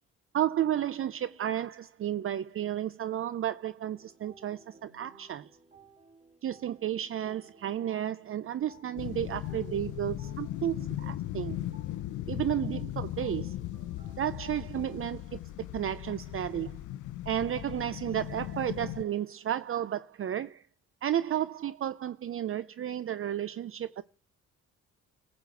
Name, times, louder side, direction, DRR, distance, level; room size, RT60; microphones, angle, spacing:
voice 1, 0.3-5.5 6.4-11.6 12.3-13.6 14.2-15.4 15.7-16.8 17.3-20.7 21.0-24.0, right 11 dB, 45° right, 0.6 m, -32 dB
sound 1, 3.9-15.0, right 2 dB, 25° right, 5.2 m, -58 dB
sound 2, 9.0-19.0, left 14 dB, 80° left, 0.6 m, -38 dB
15.5 x 5.1 x 7.9 m
cardioid pair, 90°, 30 cm